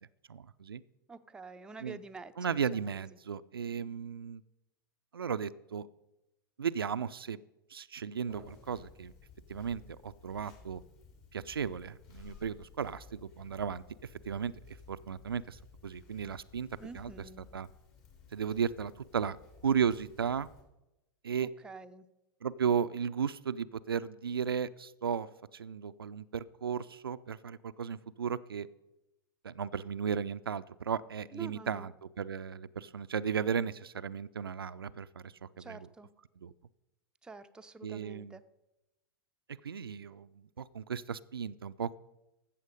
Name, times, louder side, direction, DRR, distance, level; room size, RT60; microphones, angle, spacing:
voice 1, 0.3-0.8 1.8-2.0 2.4-4.4 5.1-5.9 6.6-7.4 7.7-9.1 9.5-10.8 11.3-13.8 14.3-16.7 16.9-17.1 17.5-17.7 18.3-19.4 19.6-20.5 21.2-21.5 22.4-28.7 29.4-35.8 36.4-36.5 37.8-38.4 39.6-42.0, right 7 dB, 75° right, 14 dB, 0.4 m, -35 dB
voice 2, 1.1-2.9 16.8-17.5 21.4-22.1 31.3-31.9 35.6-36.1 37.2-38.4, right 4 dB, 5° right, 8 dB, 0.5 m, -48 dB
Conversation, 8.3-20.6, left 5 dB, 45° left, 2.9 m, -56 dB
14.0 x 7.1 x 5.2 m, 0.95 s
figure-of-eight pair, 95°, 12 cm